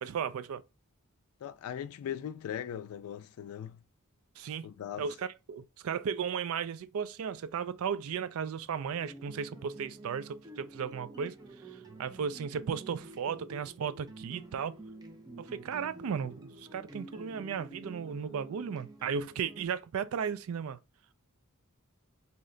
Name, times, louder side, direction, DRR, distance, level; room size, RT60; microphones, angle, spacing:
voice 1, 0.0-0.6 4.4-4.7 5.0-11.4 12.0-14.8 15.4-20.8, right 7 dB, 70° right, 0.4 m, -35 dB
voice 2, 1.4-3.8 4.6-5.1, left 9 dB, 80° left, 0.3 m, -39 dB
sound 1, 8.9-19.7, right 2 dB, 20° right, 0.6 m, -49 dB
3.2 x 2.8 x 3.8 m
head